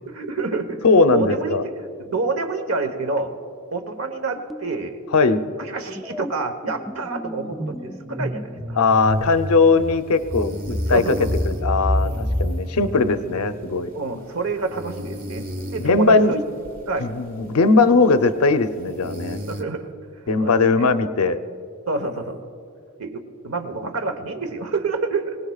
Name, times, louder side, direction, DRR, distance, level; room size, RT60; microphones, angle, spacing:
voice 1, 0.0-0.8 1.1-3.4 3.7-5.0 5.6-8.8 10.9-11.3 12.0-12.3 13.1-13.2 13.9-16.4 16.9-17.1 19.5-19.9 20.4-20.9 21.9-22.4 23.0-25.4, right 3 dB, 70° right, 7 dB, 1.1 m, -28 dB
voice 2, 0.8-1.6 5.1-5.5 8.8-11.2 11.5-13.9 15.8-16.3 17.0-19.4 20.3-21.4, left 3 dB, 90° left, 9 dB, 0.7 m, -19 dB
sound 1, 4.5-4.8 5.1-13.9, equal, ahead, 0.3 m, -29 dB
sound 2, 8.9-19.6, equal, 40° right, 1.4 m, -37 dB
23.5 x 19.0 x 2.4 m, 2.4 s
head